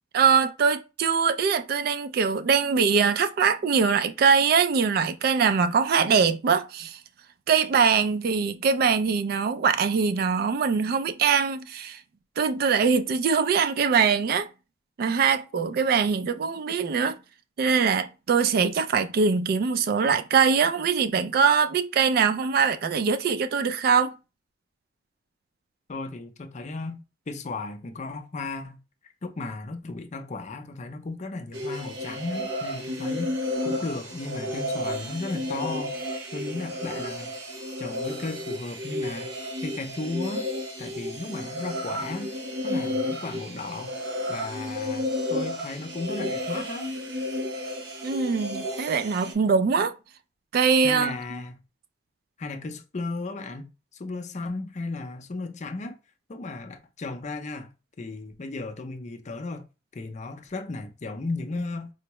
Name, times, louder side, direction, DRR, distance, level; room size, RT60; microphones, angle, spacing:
voice 1, 0.1-7.0 7.5-12.0 12.4-14.5 15.0-17.2 17.6-24.1 48.0-49.9 50.5-51.4, right 6 dB, 55° right, 0.3 m, -22 dB
voice 2, 25.9-27.0 27.3-28.8 29.2-33.3 33.6-36.0 36.3-37.3 37.8-39.3 39.6-40.5 40.8-42.3 42.6-44.0 44.3-46.9 50.8-51.6 52.4-56.0 56.3-57.7 58.0-59.7 59.9-61.9, left 3 dB, 40° left, 0.5 m, -35 dB
sound 1, 31.5-49.3, left 1 dB, 90° right, 0.8 m, -32 dB
4.5 x 2.0 x 2.9 m
head